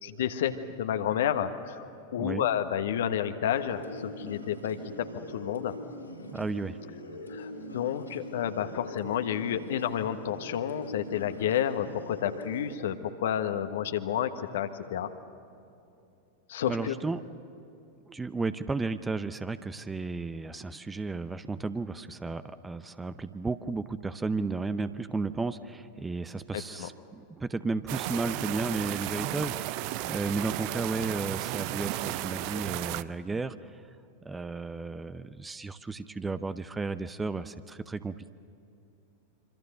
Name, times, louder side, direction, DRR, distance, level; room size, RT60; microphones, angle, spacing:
voice 1, 0.0-5.7 7.3-15.1 16.5-17.0 26.8-26.9, left 9 dB, 60° left, 9 dB, 1.3 m, -30 dB
sound 1, 3.4-12.7, left 1 dB, 85° left, 4.3 m, -43 dB
voice 2, 6.3-6.8 16.7-17.2 18.1-33.8 34.2-38.3, right 3 dB, 10° right, 13 dB, 0.7 m, -33 dB
sound 2, 27.9-33.0, right 16 dB, 45° right, 0.6 m, -34 dB
26.0 x 25.5 x 6.8 m, 2.7 s
figure-of-eight pair, 90°, 0 cm